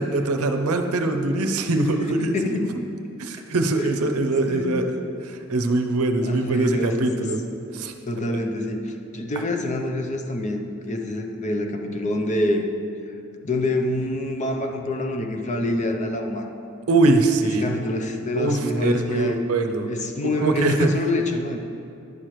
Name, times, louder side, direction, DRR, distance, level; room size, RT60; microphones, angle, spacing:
voice 1, 0.0-2.3 3.2-4.9 5.2-7.4 7.7-7.9 16.9-17.6 18.3-19.9 20.4-20.9, right 2 dB, 85° right, 6 dB, 0.6 m, -22 dB
voice 2, 1.9-2.7 3.8-3.9 4.5-4.9 6.2-7.3 8.1-12.7 13.4-16.5 17.6-19.4 19.9-21.6, left 1 dB, 35° left, 4 dB, 0.5 m, -26 dB
11.0 x 6.5 x 3.1 m, 2.6 s
head